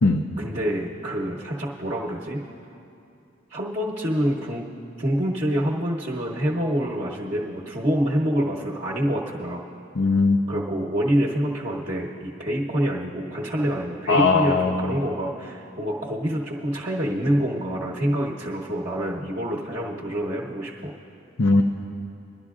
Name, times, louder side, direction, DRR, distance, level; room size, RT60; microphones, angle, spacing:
voice 1, 0.4-2.4 3.5-4.6 5.0-9.6 10.5-20.9, equal, 40° right, -5 dB, 0.9 m, -26 dB
voice 2, 10.0-10.4 14.1-14.7 21.4-21.6, left 3 dB, 65° left, 3 dB, 0.6 m, -19 dB
23.5 x 11.5 x 2.4 m, 2.7 s
head